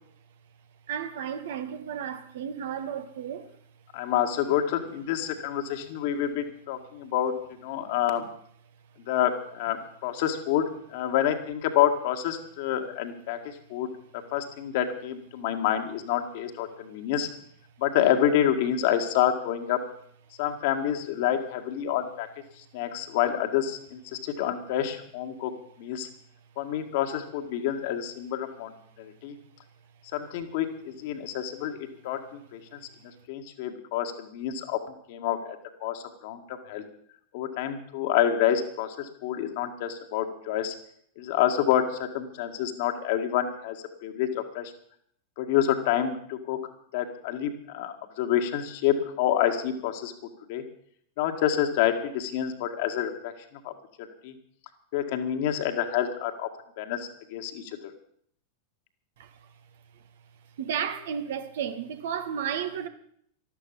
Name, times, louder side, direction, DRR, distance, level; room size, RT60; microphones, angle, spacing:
voice 1, 0.9-3.5 59.2-59.3 60.6-62.9, right 8 dB, 60° right, 1.5 m, -33 dB
voice 2, 3.9-7.3 7.6-8.2 9.1-13.9 14.3-17.3 17.8-19.8 20.4-22.3 22.6-25.5 25.8-26.1 26.6-29.4 30.1-32.8 33.3-34.8 35.1-35.4 35.8-36.8 37.3-40.7 41.2-44.7 45.4-46.6 46.9-50.1 50.5-50.6 51.2-53.3 53.6-53.7 54.0-54.3 54.9-56.5 56.8-57.9, left 10 dB, 50° left, 2.0 m, -28 dB
13.0 x 13.0 x 7.2 m
figure-of-eight pair, 90°, 0 cm